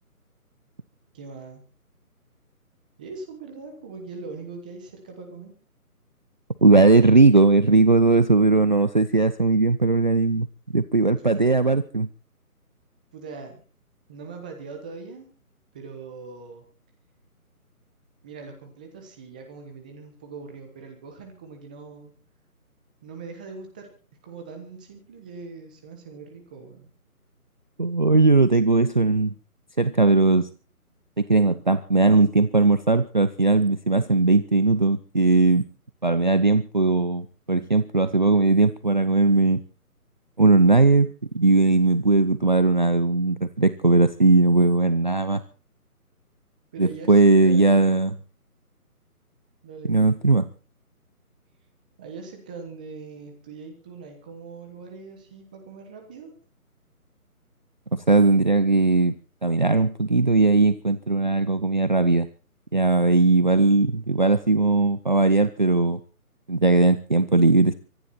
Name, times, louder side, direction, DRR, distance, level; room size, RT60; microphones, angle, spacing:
voice 1, 1.1-1.6 3.0-5.5 11.2-11.4 13.1-13.6 14.1-15.3 15.7-16.6 18.2-22.1 23.0-23.9 24.2-26.9 46.7-47.9 49.6-49.9 52.0-56.3, right 4 dB, 5° right, 4 dB, 1.0 m, -41 dB
voice 2, 6.6-10.5 10.7-12.1 27.8-29.3 29.8-30.5 31.3-35.6 36.0-39.6 40.4-45.4 46.8-48.2 49.9-50.5 57.9-59.1 59.4-62.3 62.7-66.0 66.5-67.7, right 3 dB, 30° right, 13 dB, 0.7 m, -19 dB
24.5 x 11.0 x 4.3 m, 0.38 s
figure-of-eight pair, 165°, 45 cm